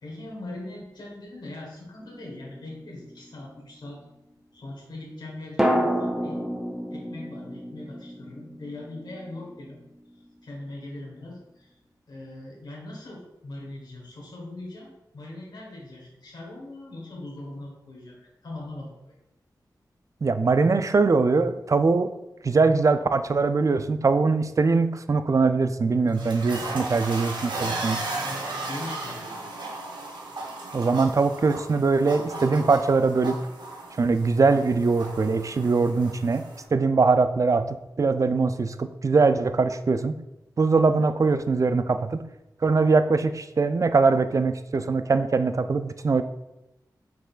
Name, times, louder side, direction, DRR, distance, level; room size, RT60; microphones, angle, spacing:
voice 1, 0.0-4.0 4.5-6.4 6.9-9.8 10.4-11.8 12.1-19.1 28.1-29.7, left 2 dB, 70° left, -3 dB, 1.2 m, -41 dB
sound 1, 2.0-3.2 5.6-9.6 9.8-9.9, equal, 10° right, 0.7 m, -29 dB
voice 2, 20.2-22.1 22.4-28.0 30.7-33.4 34.0-40.2 40.6-42.3 42.6-46.2, right 4 dB, 45° right, 10 dB, 0.3 m, -22 dB
sound 2, 25.8-36.6, right 2 dB, 80° right, 0.8 m, -35 dB
5.5 x 3.7 x 2.4 m, 0.93 s
cardioid pair, 45°, 8 cm